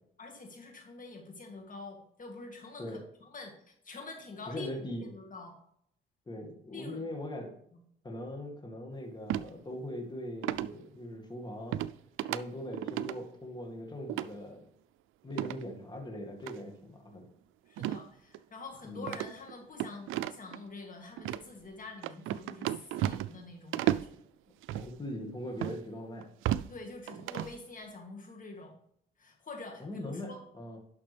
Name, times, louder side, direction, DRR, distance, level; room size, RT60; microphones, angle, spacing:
voice 1, 0.2-5.5 6.7-7.1 7.7-7.8 17.6-24.2 26.7-28.8 29.2-30.4, left 3 dB, 40° left, 2 dB, 1.8 m, -46 dB
voice 2, 4.5-5.1 6.3-7.5 8.0-11.8 12.3-14.6 15.2-17.3 18.8-19.1 24.7-26.3 29.8-30.8, left 1 dB, 20° left, 2 dB, 1.9 m, -41 dB
sound 1, 9.3-9.5 10.4-10.7 11.7-11.9 12.2-12.4 12.7-13.2 14.1-14.3 15.3-15.6 16.4-16.5 17.8-18.1 18.3-18.4 19.0-20.6 21.2-21.4 22.0-23.4 23.7-24.1 24.6-24.9 25.6-25.8 26.2-26.7 27.1-27.6, right 13 dB, 90° right, 0.4 m, -33 dB
11.0 x 5.8 x 3.4 m, 0.70 s
cardioid pair, 90°, 20 cm